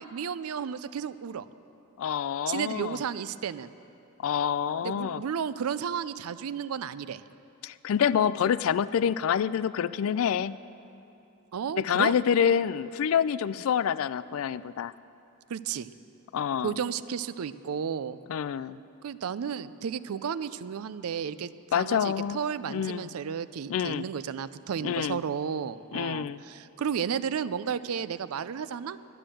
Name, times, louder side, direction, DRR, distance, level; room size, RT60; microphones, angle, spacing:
voice 1, 0.0-1.5 2.5-3.7 4.8-7.2 11.5-12.1 15.5-15.9 16.6-18.2 19.0-29.0, right 7 dB, 80° right, 15 dB, 0.4 m, -33 dB
voice 2, 2.0-3.0 4.2-5.2 7.6-10.6 11.8-14.9 16.3-16.8 18.3-18.8 21.7-22.4 22.7-23.1 23.7-24.0 24.8-25.2 25.9-26.4, left 8 dB, 70° left, 17 dB, 0.3 m, -27 dB
11.5 x 9.8 x 7.6 m, 2.8 s
head